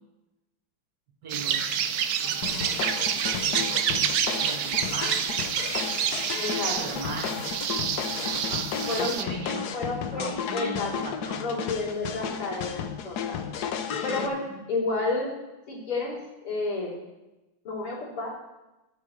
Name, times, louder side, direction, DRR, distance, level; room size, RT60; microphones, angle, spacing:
voice 1, 1.2-1.7 2.2-3.8 4.3-5.2 6.8-7.5 8.1-9.7 10.1-11.5 13.9-14.7, right 2 dB, 50° right, -1 dB, 2.4 m, -39 dB
sound 1, 1.3-9.2, right 8 dB, 70° right, 0.9 m, -28 dB
sound 2, 2.4-14.3, left 7 dB, 65° left, 1.0 m, -33 dB
voice 2, 6.4-6.8 8.9-9.1 9.7-10.9 11.4-13.4 14.0-15.3 15.7-17.0 17.6-18.3, left 3 dB, 90° left, -6 dB, 4.4 m, -31 dB
21.0 x 8.2 x 3.2 m, 1.0 s
omnidirectional pair, 2.3 m